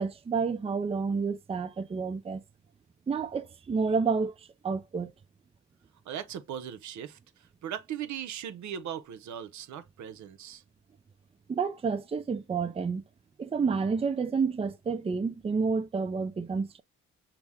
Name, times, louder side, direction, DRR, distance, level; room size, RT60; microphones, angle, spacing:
voice 1, 0.0-2.4 3.1-5.1 11.5-13.0 13.4-16.8, right 5 dB, 20° right, 0.5 m, -29 dB
voice 2, 6.1-7.2 7.6-10.6, right 9 dB, 70° right, 0.7 m, -38 dB
5.8 x 2.1 x 3.5 m
cardioid pair, 90°, 30 cm